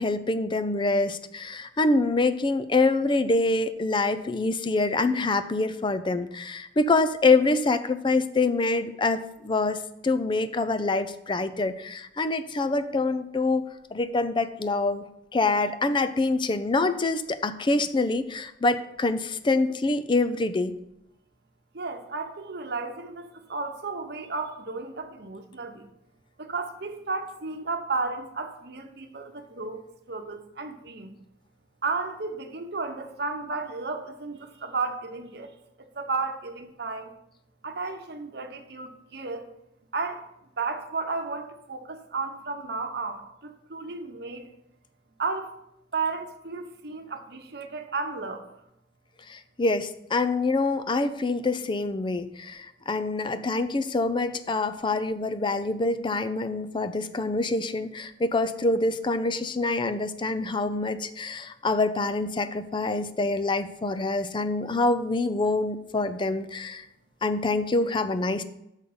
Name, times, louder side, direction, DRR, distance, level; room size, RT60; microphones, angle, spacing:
voice 1, 0.0-9.8 10.0-13.6 13.9-15.0 15.3-20.7 49.3-66.9 67.2-68.4, left 3 dB, 30° left, 12 dB, 0.5 m, -25 dB
voice 2, 21.7-25.8 26.4-29.8 30.1-31.1 31.8-35.5 35.9-37.1 37.6-39.5 39.9-40.3 40.6-44.5 45.2-45.5 45.9-48.4, right 4 dB, 65° right, 5 dB, 1.0 m, -33 dB
6.5 x 5.4 x 7.0 m, 0.83 s
head